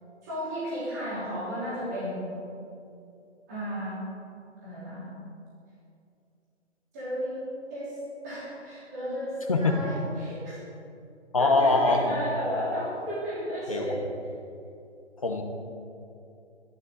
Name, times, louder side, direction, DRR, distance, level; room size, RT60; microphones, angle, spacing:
voice 1, 0.2-2.4 3.5-4.0 4.6-5.1 6.9-7.4 7.7-7.9 8.2-10.6 11.4-14.0, equal, 15° right, -10 dB, 3.2 m, -33 dB
voice 2, 9.5-9.8 11.3-12.2 13.7-14.0 15.2-15.4, left 3 dB, 30° left, 4 dB, 1.0 m, -23 dB
24.5 x 11.5 x 4.0 m, 2.6 s
hypercardioid pair, 175°, 36 cm